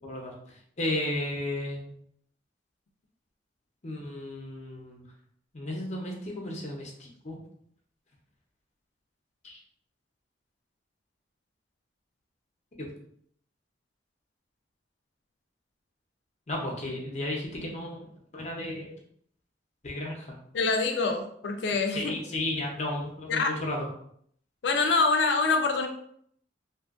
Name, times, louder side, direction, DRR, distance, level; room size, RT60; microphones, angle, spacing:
voice 1, 0.8-1.9 3.8-5.0 5.5-7.4 9.4-9.6 16.5-18.0 18.3-18.9 19.8-20.4 21.9-23.9, left 1 dB, 40° left, -1 dB, 0.7 m, -33 dB
voice 2, 20.5-22.1 23.3-23.5 24.6-25.9, left 4 dB, 75° left, 4 dB, 0.4 m, -25 dB
2.6 x 2.4 x 2.4 m, 0.66 s
head